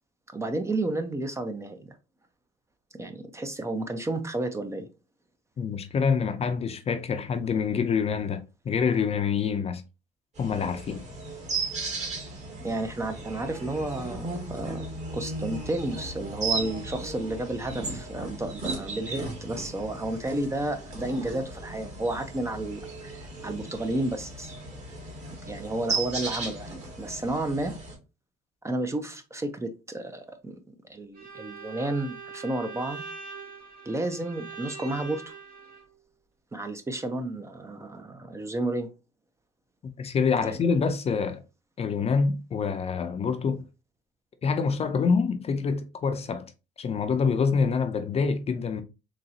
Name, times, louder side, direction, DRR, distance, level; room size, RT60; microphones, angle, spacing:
voice 1, 0.3-2.0 2.9-4.9 12.6-14.9 15.1-24.5 25.5-26.7 27.0-27.8 28.6-30.6 30.9-33.0 33.8-35.3 36.5-38.9 40.4-40.5, right 2 dB, 15° right, 0.5 m, -31 dB
voice 2, 5.6-9.8 10.4-11.0 40.0-41.4 41.8-43.6 44.4-46.5 46.8-48.8, left 5 dB, 35° left, 0.6 m, -26 dB
sound 1, 10.3-27.9, right 3 dB, 40° right, 2.0 m, -36 dB
Bowed string instrument, 31.1-35.8, right 5 dB, 70° right, 2.0 m, -42 dB
4.0 x 3.0 x 2.7 m
cardioid pair, 110°, 17 cm